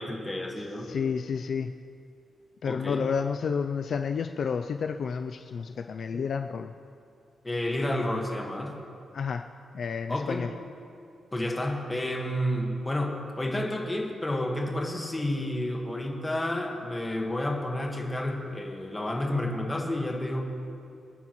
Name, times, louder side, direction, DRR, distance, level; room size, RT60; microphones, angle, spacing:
voice 1, 0.0-0.9 2.6-3.1 6.1-6.2 7.4-8.8 10.1-10.5 11.3-20.4, left 1 dB, 15° left, 0 dB, 1.5 m, -30 dB
voice 2, 0.9-1.7 2.6-6.7 9.1-9.4 9.7-10.5, left 6 dB, 50° left, 7 dB, 0.4 m, -30 dB
28.0 x 9.6 x 3.1 m, 2.5 s
wide cardioid pair, 165°, 0 cm